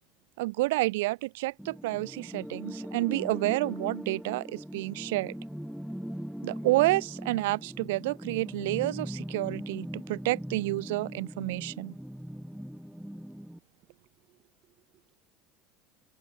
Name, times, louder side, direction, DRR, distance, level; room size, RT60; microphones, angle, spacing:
voice 1, 0.4-5.3 6.4-12.0, right 20 dB, 85° right, 0.8 m, -29 dB
sound 1, 1.6-13.6, equal, ahead, 0.7 m, -40 dB
voice 2, 13.9-15.2, right 15 dB, 55° right, 7.2 m, -68 dB
supercardioid pair, 110°, 0 cm